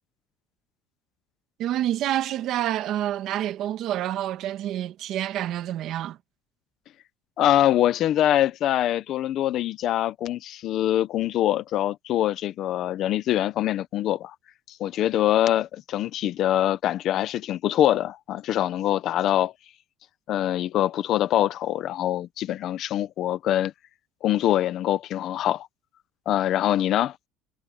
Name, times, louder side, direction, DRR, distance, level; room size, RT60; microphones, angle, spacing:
voice 1, 1.6-6.2, right 12 dB, 45° right, 1.5 m, -28 dB
voice 2, 7.4-14.3 14.7-19.5 20.3-23.7 24.2-25.7 26.3-27.1, left 12 dB, 40° left, 0.9 m, -24 dB
cardioid pair, 180°, 0 cm